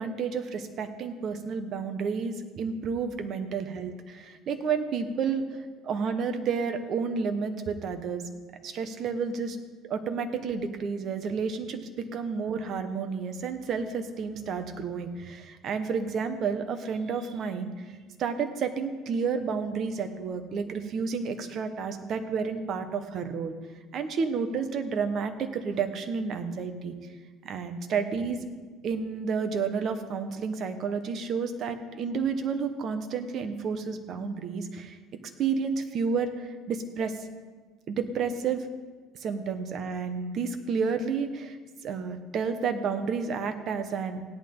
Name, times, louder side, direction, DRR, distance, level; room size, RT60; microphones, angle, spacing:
voice 1, 0.0-8.2 8.6-9.6 9.8-23.6 23.9-26.9 27.4-28.4 28.8-35.0 35.4-37.2 37.9-38.7 39.2-41.6 41.8-44.2, right 5 dB, 50° right, 7 dB, 1.3 m, -31 dB
17.0 x 10.5 x 3.9 m, 1.4 s
cardioid pair, 120°, 0 cm